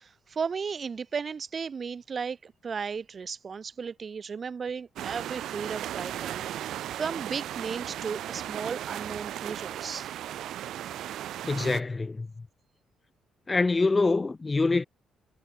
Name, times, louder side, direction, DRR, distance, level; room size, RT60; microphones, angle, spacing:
voice 1, 0.0-10.1, right 6 dB, 40° right, 6.4 m, -35 dB
sound 1, 5.0-11.8, right 12 dB, 75° right, 4.0 m, -36 dB
voice 2, 11.4-12.3 13.5-14.8, left 3 dB, 25° left, 1.5 m, -25 dB
cardioid pair, 90°, 0 cm